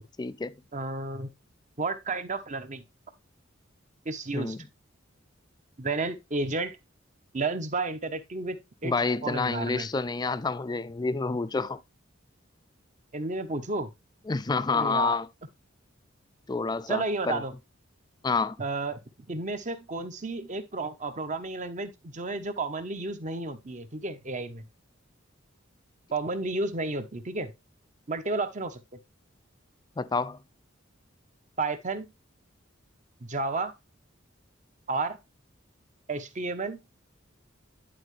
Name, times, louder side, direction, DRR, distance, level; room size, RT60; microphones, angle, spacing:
voice 1, 0.2-0.6 4.3-4.6 8.8-11.8 14.3-15.3 16.5-17.4 18.2-18.6 30.0-30.4, left 4 dB, 20° left, 0.4 m, -28 dB
voice 2, 0.7-1.3 1.8-2.8 4.0-4.6 5.8-6.8 7.3-8.6 8.8-8.9 9.2-9.9 13.1-13.9 14.7-15.2 16.9-17.5 18.6-19.0 19.3-24.6 26.1-27.5 28.1-28.8 31.6-32.1 33.2-33.7 34.9-35.2 36.1-36.8, right 3 dB, 40° right, 1.0 m, -32 dB
10.5 x 4.6 x 3.3 m
head